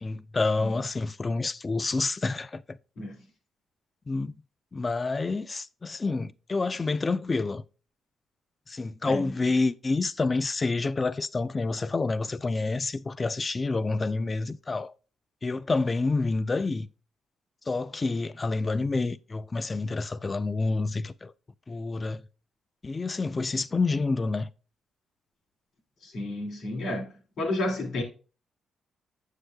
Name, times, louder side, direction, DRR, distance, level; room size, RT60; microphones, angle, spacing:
voice 1, 0.0-2.8 4.1-4.4 4.7-7.6 8.7-14.9 15.4-16.9 17.7-21.3 21.7-22.2 22.8-24.5, left 3 dB, 30° left, 0.3 m, -28 dB
voice 2, 26.0-27.0 27.4-28.0, left 1 dB, 70° left, 2.1 m, -31 dB
7.1 x 6.5 x 2.2 m
cardioid pair, 90°, 0 cm